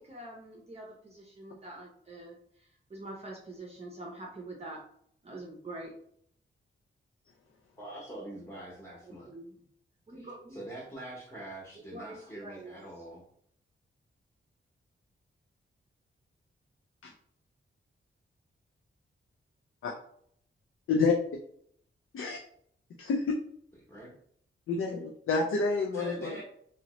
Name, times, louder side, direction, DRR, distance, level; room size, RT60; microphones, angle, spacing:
voice 1, 0.0-4.8 5.2-5.9 9.0-9.6 10.1-10.6 11.7-12.7, right 2 dB, 30° right, -2 dB, 0.6 m, -45 dB
voice 2, 7.8-9.3 10.5-13.2 23.9-24.1 25.9-26.4, right 1 dB, 10° left, -5 dB, 0.8 m, -43 dB
voice 3, 23.0-23.3 24.7-26.4, left 4 dB, 75° left, 1 dB, 0.5 m, -28 dB
3.0 x 2.8 x 2.9 m, 0.66 s
wide cardioid pair, 140°, 21 cm